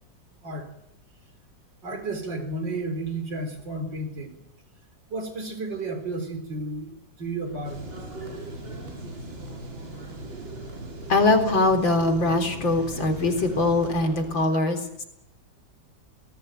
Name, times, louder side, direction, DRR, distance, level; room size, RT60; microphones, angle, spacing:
voice 1, 1.8-4.4 5.1-7.9, right 2 dB, 70° right, 7 dB, 4.6 m, -32 dB
sound 1, 7.5-14.4, right 1 dB, 30° right, 7.3 m, -44 dB
sound 2, 7.6-14.0, right 2 dB, 90° right, 4.8 m, -39 dB
voice 2, 11.1-15.0, left 2 dB, 85° left, 6 dB, 4.6 m, -22 dB
28.0 x 20.0 x 9.2 m, 0.81 s
omnidirectional pair, 2.0 m